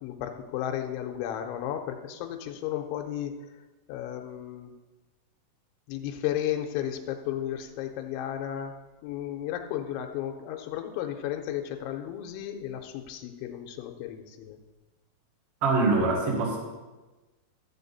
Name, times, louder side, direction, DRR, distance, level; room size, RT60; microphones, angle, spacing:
voice 1, 0.0-3.4 3.9-4.7 5.9-8.7 9.0-14.6, left 11 dB, 80° left, 4 dB, 3.0 m, -34 dB
voice 2, 15.6-16.6, right 3 dB, 55° right, -2 dB, 1.5 m, -24 dB
13.5 x 7.3 x 4.1 m, 1.2 s
omnidirectional pair, 5.7 m